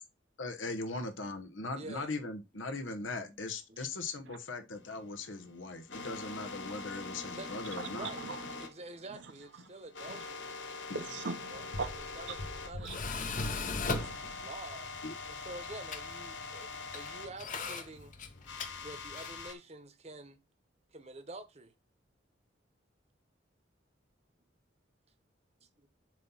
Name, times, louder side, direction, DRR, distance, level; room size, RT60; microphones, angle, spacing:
voice 1, 0.4-8.1 10.9-11.0 15.0-15.1, left 3 dB, 90° left, 1.1 m, -39 dB
voice 2, 1.5-2.1 3.2-3.3 3.7-3.9 7.4-10.8 11.5-11.6 12.2-12.4 12.6-13.5 14.3-14.9 15.2-18.1 18.8-20.4 20.9-21.7, right 2 dB, 35° right, 0.9 m, -48 dB
sound 1, 4.8-12.7 13.0-13.1 13.5-13.6 13.9-17.3 18.5-19.5, left 4 dB, 65° left, 1.3 m, -44 dB
voice 3, 7.7-8.6 9.1-9.3 9.6-9.7 10.1-10.3 10.9-11.9 12.3-12.4 12.8-13.0 13.3-14.5, right 4 dB, 70° right, 0.8 m, -42 dB
Tools, 11.5-19.5, left 3 dB, 45° left, 0.8 m, -40 dB
7.5 x 2.9 x 5.4 m
head